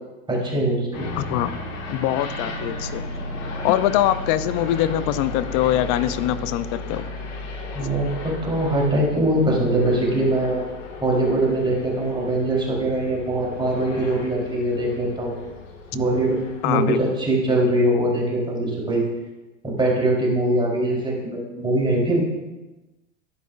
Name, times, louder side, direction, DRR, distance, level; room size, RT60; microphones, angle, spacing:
voice 1, 0.3-0.9 7.7-10.6 11.0-15.3 15.9-19.0 19.6-22.2, right 1 dB, 15° right, -4 dB, 3.8 m, -22 dB
sound 1, 0.9-17.1, left 2 dB, 90° left, 1.9 m, -34 dB
voice 2, 1.2-1.5 1.9-3.1 3.6-7.1 16.6-17.0, left 13 dB, 55° left, 14 dB, 0.7 m, -23 dB
12.5 x 10.5 x 2.6 m, 1.1 s
supercardioid pair, 110°, 36 cm